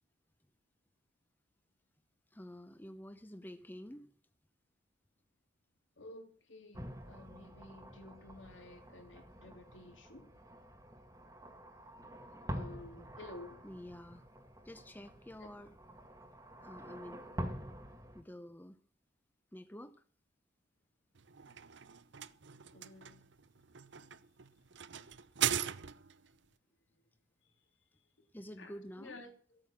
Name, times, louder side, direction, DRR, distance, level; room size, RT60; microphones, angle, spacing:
voice 1, 2.3-4.1 13.6-14.2 14.6-15.8 16.6-17.2 18.1-18.8 19.5-20.0 28.3-29.2, equal, 10° left, 10 dB, 0.7 m, -49 dB
voice 2, 6.0-10.3 12.5-13.6 15.4-15.5 22.7-23.2 27.4-27.5 28.6-29.6, left 2 dB, 70° left, 5 dB, 3.1 m, -53 dB
sound 1, 6.7-18.2, equal, 15° right, 1.7 m, -47 dB
sound 2, 21.2-26.3, right 10 dB, 65° right, 0.7 m, -39 dB
15.0 x 8.9 x 7.2 m, 0.43 s
head